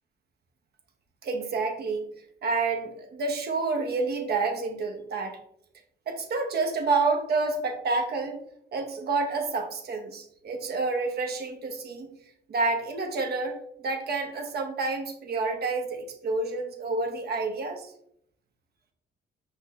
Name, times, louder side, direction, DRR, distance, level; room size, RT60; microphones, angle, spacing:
voice 1, 1.2-2.1 2.4-5.4 6.1-8.4 8.7-12.1 12.5-13.6 13.8-17.9, right 3 dB, 55° right, 4 dB, 0.7 m, -29 dB
5.5 x 2.2 x 2.3 m, 0.72 s
cardioid pair, 90°, 20 cm